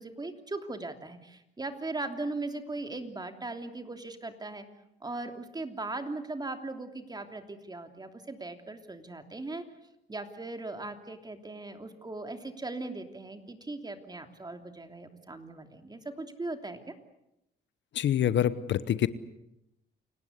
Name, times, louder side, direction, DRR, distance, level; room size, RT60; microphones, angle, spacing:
voice 1, 0.0-4.6 5.0-9.6 10.1-16.9, right 2 dB, 20° right, 6 dB, 3.0 m, -39 dB
voice 2, 17.9-19.1, left 10 dB, 65° left, 15 dB, 1.0 m, -26 dB
29.0 x 18.5 x 8.2 m, 0.85 s
cardioid pair, 90°, 20 cm